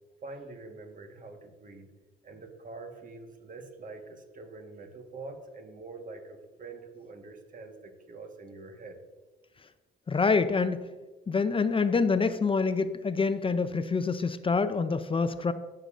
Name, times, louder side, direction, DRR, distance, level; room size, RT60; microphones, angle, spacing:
voice 1, 0.2-1.9 2.2-9.0, right 3 dB, 40° right, 5 dB, 1.4 m, -45 dB
voice 2, 10.1-10.9 11.3-15.5, left 4 dB, 25° left, 11 dB, 0.5 m, -26 dB
15.5 x 6.7 x 2.5 m, 1.2 s
cardioid pair, 90°, 20 cm